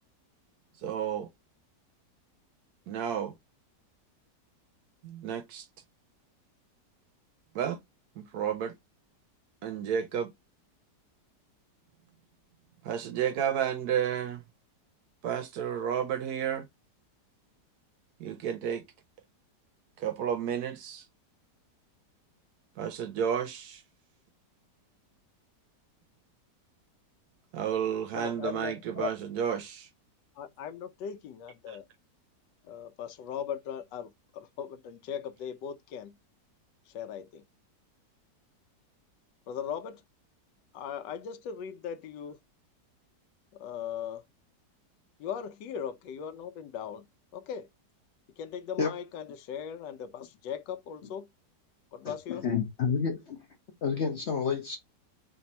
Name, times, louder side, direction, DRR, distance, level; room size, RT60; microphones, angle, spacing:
voice 1, 0.8-1.3 2.9-3.3 5.0-5.6 7.5-7.8 8.2-8.7 9.6-10.3 12.8-14.4 15.2-16.7 18.2-18.8 20.0-21.0 22.8-23.8 27.5-29.9 31.7-31.8, right 8 dB, 70° right, 1.0 m, -31 dB
voice 2, 28.1-29.1 30.4-31.8 32.6-36.1 36.9-37.4 39.5-40.0 40.7-42.4 43.5-44.2 45.2-47.0 47.3-47.7 48.4-51.3 51.9-52.5, left 8 dB, 85° left, 1.3 m, -38 dB
voice 3, 52.0-53.4 53.8-54.8, left 6 dB, 60° left, 0.7 m, -29 dB
3.3 x 2.6 x 4.1 m
omnidirectional pair, 1.9 m